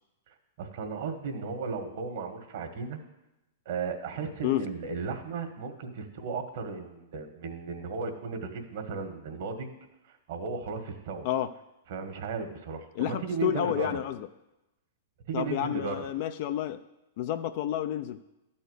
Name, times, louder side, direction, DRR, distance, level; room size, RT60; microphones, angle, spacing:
voice 1, 0.6-3.0 3.7-9.7 10.0-11.3 11.9-14.0 15.3-16.1, right 5 dB, 65° right, 6 dB, 1.6 m, -35 dB
voice 2, 13.0-14.3 15.3-16.8 17.2-18.2, left 12 dB, 55° left, 9 dB, 0.5 m, -30 dB
12.5 x 4.2 x 8.1 m, 0.96 s
hypercardioid pair, 115°, 0 cm